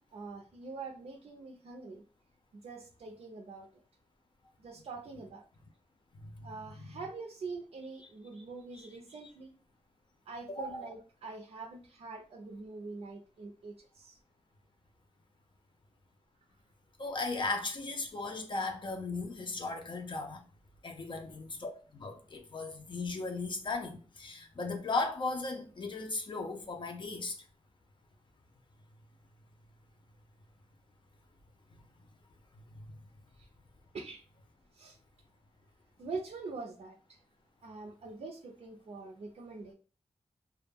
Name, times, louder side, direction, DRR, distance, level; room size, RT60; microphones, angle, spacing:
voice 1, 0.1-2.0 2.5-3.7 4.6-5.4 6.4-9.5 10.3-14.2 33.3-33.5 33.9-34.2 34.7-35.0 36.0-37.2 37.6-39.7, right 3 dB, 70° right, 0.4 m, -44 dB
voice 2, 10.5-10.9 17.0-20.4 20.8-27.3, left 3 dB, 45° left, 0.4 m, -36 dB
2.2 x 2.0 x 3.3 m
wide cardioid pair, 150°, 11 cm